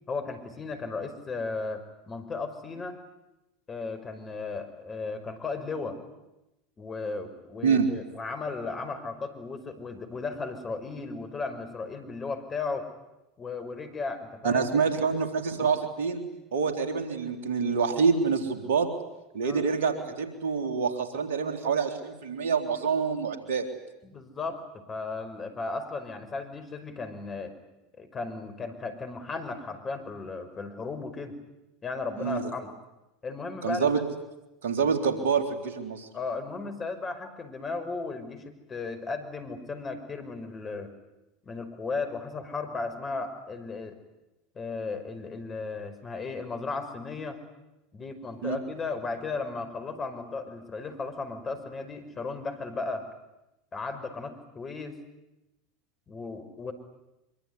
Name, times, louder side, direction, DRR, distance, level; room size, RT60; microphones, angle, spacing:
voice 1, 0.1-3.0 3.7-6.0 6.8-12.9 13.4-14.9 19.4-19.6 24.0-27.5 28.0-31.4 31.8-32.7 33.2-34.0 36.1-40.9 41.4-44.0 44.6-47.4 47.9-53.1 53.7-55.0 56.1-56.7, left 4 dB, 30° left, 9 dB, 5.4 m, -35 dB
voice 2, 14.4-16.2 16.5-18.9 19.3-23.7 32.2-32.5 33.6-34.0 34.6-36.1 48.4-48.6, right 5 dB, 75° right, 6 dB, 3.6 m, -26 dB
25.0 x 24.5 x 9.7 m, 0.92 s
hypercardioid pair, 75°, 0 cm